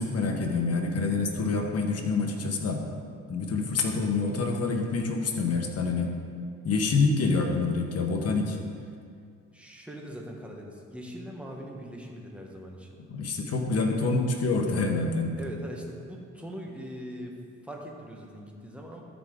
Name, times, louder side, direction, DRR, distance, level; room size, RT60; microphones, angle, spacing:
voice 1, 0.0-2.8 3.3-6.1 6.6-8.6 13.1-15.4, left 3 dB, 55° left, 2 dB, 1.3 m, -27 dB
voice 2, 9.5-13.0 15.4-17.3 17.6-19.0, equal, 5° right, -1 dB, 1.4 m, -41 dB
13.0 x 5.1 x 3.9 m, 2.2 s
cardioid pair, 90°, 30 cm